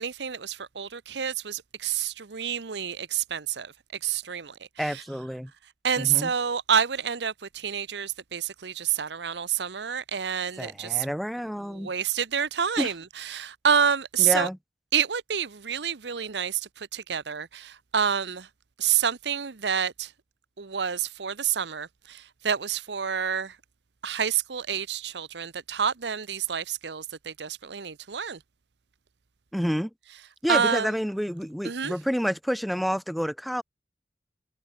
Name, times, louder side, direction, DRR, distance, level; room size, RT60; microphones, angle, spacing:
voice 1, 0.0-3.7 4.0-4.5 4.9-5.0 5.8-11.1 11.7-14.5 14.9-18.5 18.8-20.1 20.6-23.6 24.0-28.4 30.5-30.9 31.6-31.9, right 7 dB, 75° right, 0.9 m, -28 dB
voice 2, 4.8-5.5 6.0-6.3 10.6-11.9 12.8-12.9 14.2-14.6 29.5-29.9 30.4-33.6, equal, ahead, 4.2 m, -29 dB
head